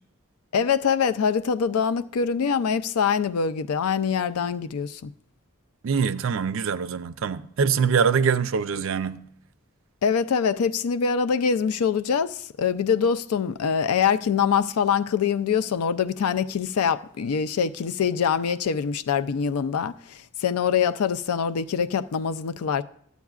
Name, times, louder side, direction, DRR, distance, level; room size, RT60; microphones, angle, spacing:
voice 1, 0.5-5.1 10.0-22.8, left 6 dB, 90° left, 0.4 m, -24 dB
voice 2, 5.8-9.2, right 6 dB, 65° right, 0.4 m, -24 dB
13.0 x 8.2 x 2.4 m
head